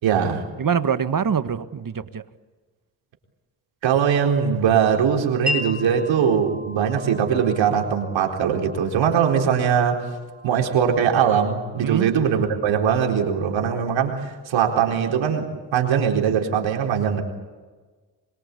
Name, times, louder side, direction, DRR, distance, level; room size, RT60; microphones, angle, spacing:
voice 1, 0.0-0.4 3.8-10.0 10.4-17.2, right 7 dB, 85° right, 2 dB, 4.2 m, -21 dB
voice 2, 0.6-2.2 11.8-12.1, right 7 dB, 45° right, 11 dB, 1.7 m, -24 dB
Wind chime, 5.5-13.1, left 3 dB, ahead, 6.4 m, -37 dB
25.5 x 23.0 x 8.5 m, 1.3 s
supercardioid pair, 50°, 45 cm